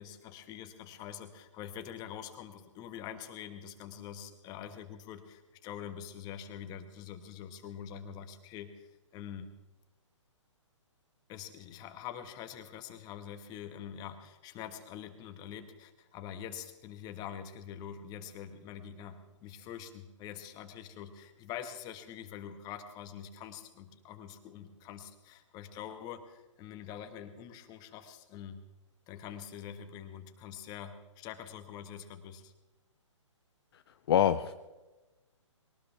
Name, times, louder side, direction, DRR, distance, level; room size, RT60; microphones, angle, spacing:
voice 1, 0.0-9.5 11.3-28.6 29.1-32.5, left 9 dB, 25° left, 7 dB, 1.7 m, -45 dB
voice 2, 34.1-34.5, left 10 dB, 50° left, 9 dB, 0.7 m, -25 dB
22.0 x 18.5 x 3.5 m, 1.1 s
hypercardioid pair, 135°, 16 cm